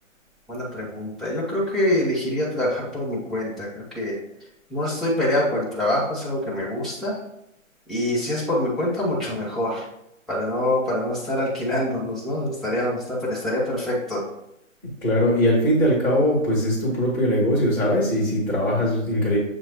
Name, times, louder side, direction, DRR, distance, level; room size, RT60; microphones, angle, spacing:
voice 1, 0.5-4.2 4.7-7.2 7.9-9.9 10.3-14.3, left 1 dB, ahead, -9 dB, 0.5 m, -25 dB
voice 2, 15.0-19.4, equal, 15° right, -16 dB, 1.0 m, -21 dB
7.0 x 2.6 x 2.8 m, 0.80 s
hypercardioid pair, 175°, 41 cm